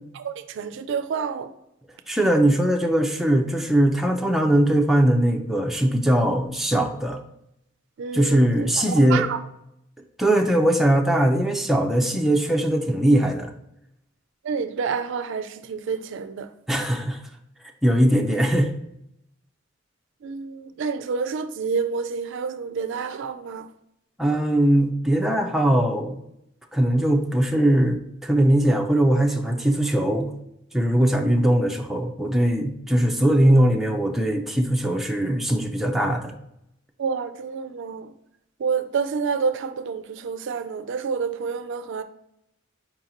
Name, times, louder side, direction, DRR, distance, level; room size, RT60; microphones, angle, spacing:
voice 1, 0.2-1.5 8.0-9.4 14.4-16.5 20.2-23.7 37.0-38.1 38.6-42.0, right 5 dB, 65° right, 0.4 m, -28 dB
voice 2, 2.1-7.2 8.1-9.3 10.2-13.5 16.7-17.2 17.8-18.7 24.2-26.2 26.7-30.3 30.7-36.3, right 1 dB, ahead, 0.4 m, -20 dB
4.6 x 2.9 x 3.8 m
head